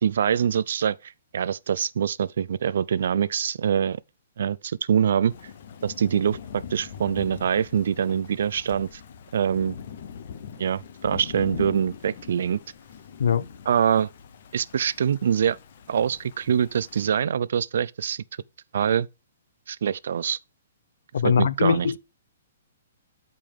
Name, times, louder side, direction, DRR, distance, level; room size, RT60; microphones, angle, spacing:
voice 1, 0.0-4.0 4.4-5.3 5.8-9.0 9.3-9.8 10.6-12.6 13.7-14.1 14.5-15.6 15.9-18.2 18.7-19.1 19.7-20.4 21.2-21.9, right 8 dB, 65° right, 0.4 m, -24 dB
Thunder / Rain, 5.3-17.1, left 7 dB, 45° left, 1.0 m, -42 dB
voice 2, 21.1-22.0, left 7 dB, 70° left, 0.7 m, -21 dB
12.5 x 5.3 x 3.5 m
hypercardioid pair, 170°, 0 cm